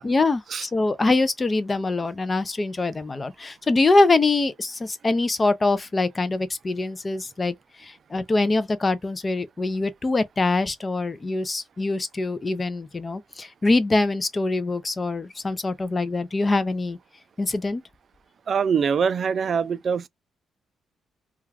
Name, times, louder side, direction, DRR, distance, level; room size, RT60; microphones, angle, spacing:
voice 1, 0.0-7.5 7.8-17.0 17.4-17.8, left 3 dB, 25° left, 0.4 m, -24 dB
voice 2, 18.5-20.1, right 6 dB, 50° right, 0.3 m, -23 dB
2.3 x 2.2 x 3.2 m
cardioid pair, 90°, 0 cm